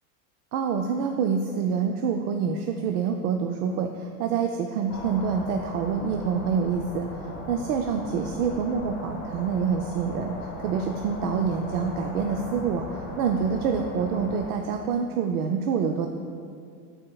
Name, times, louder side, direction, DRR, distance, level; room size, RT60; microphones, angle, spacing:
voice 1, 0.5-16.1, right 6 dB, 85° right, 4 dB, 0.6 m, -27 dB
sound 1, 4.9-14.5, left 2 dB, 25° left, 1.4 m, -38 dB
12.5 x 4.5 x 2.3 m, 2.3 s
supercardioid pair, 135°, 44 cm